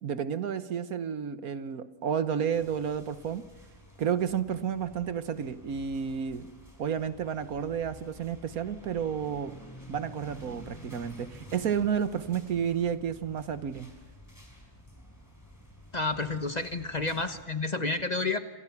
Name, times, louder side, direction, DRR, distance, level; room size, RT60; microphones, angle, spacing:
voice 1, 0.0-3.5 4.0-6.5 6.8-9.6 9.9-13.9, right 8 dB, 75° right, 12 dB, 1.5 m, -31 dB
sound 1, 2.5-17.4, equal, 10° left, 5.7 m, -51 dB
voice 2, 15.9-18.4, left 3 dB, 30° left, 8 dB, 1.2 m, -30 dB
28.0 x 27.0 x 6.0 m, 1.1 s
omnidirectional pair, 1.6 m